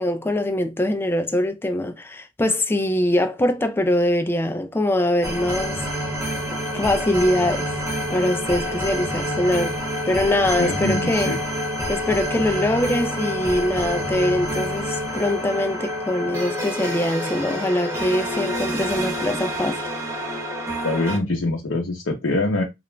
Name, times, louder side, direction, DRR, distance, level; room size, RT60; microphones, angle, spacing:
voice 1, 0.0-6.1 6.7-7.8 8.1-9.8 10.1-11.3 11.9-19.9, left 1 dB, 10° left, 0.3 m, -23 dB
sound 1, 5.2-21.2, equal, 15° right, 0.8 m, -27 dB
voice 2, 10.6-11.4 20.7-22.6, left 2 dB, 70° left, 0.6 m, -24 dB
2.4 x 2.0 x 3.1 m
head